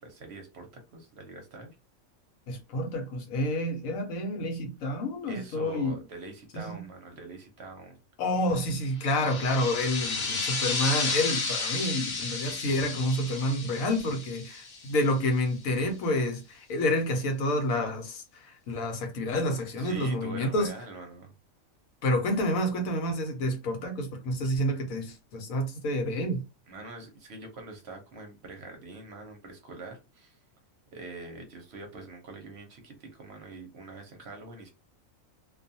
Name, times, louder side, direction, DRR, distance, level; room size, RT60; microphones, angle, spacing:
voice 1, 0.0-1.7 5.3-8.0 19.8-21.3 26.7-30.4 30.9-34.7, right 2 dB, 55° right, 0.8 m, -44 dB
voice 2, 2.5-5.9 6.5-6.8 8.2-20.7 22.0-26.4, left 1 dB, 80° left, 1.1 m, -29 dB
sound 1, 9.0-15.3, left 4 dB, 55° left, 0.5 m, -32 dB
2.5 x 2.3 x 2.6 m
omnidirectional pair, 1.4 m